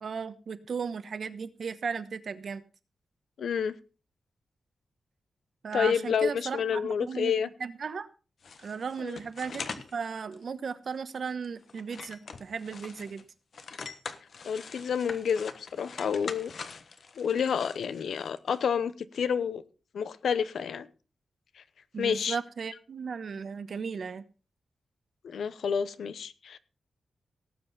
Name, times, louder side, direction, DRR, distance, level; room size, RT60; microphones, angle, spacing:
voice 1, 0.0-2.6 5.6-7.3 7.6-8.1 8.6-13.2 21.9-24.2, right 6 dB, 65° right, 1.1 m, -36 dB
voice 2, 3.4-3.7 5.7-7.5 9.0-9.2 14.4-16.5 17.2-19.6 19.9-20.9 22.0-22.4 25.2-26.6, left 7 dB, 90° left, 0.8 m, -29 dB
sound 1, 8.4-9.9 10.3-10.4 10.9-11.1 11.4-13.2 13.5-18.6, left 5 dB, 65° left, 1.3 m, -43 dB
18.0 x 7.8 x 4.1 m
wide cardioid pair, 95°, 0 cm